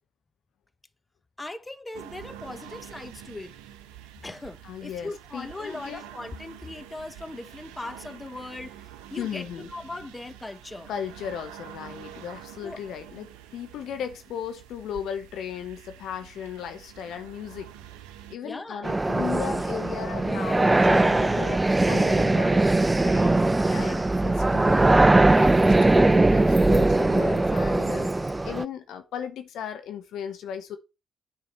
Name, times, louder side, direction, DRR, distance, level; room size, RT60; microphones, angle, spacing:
voice 1, 1.4-3.5 4.2-10.9 12.6-12.8 18.4-18.9 23.7-24.0, left 2 dB, 15° left, 1.1 m, -39 dB
sound 1, 1.9-18.4, right 11 dB, 70° right, 0.7 m, -46 dB
voice 2, 4.6-6.0 9.2-9.7 10.9-17.7 18.3-22.7 23.0-23.4 23.7-30.8, left 8 dB, 60° left, 1.0 m, -36 dB
sound 2, 18.8-28.6, right 2 dB, 20° right, 0.4 m, -20 dB
9.4 x 4.8 x 5.6 m
figure-of-eight pair, 40°, 0 cm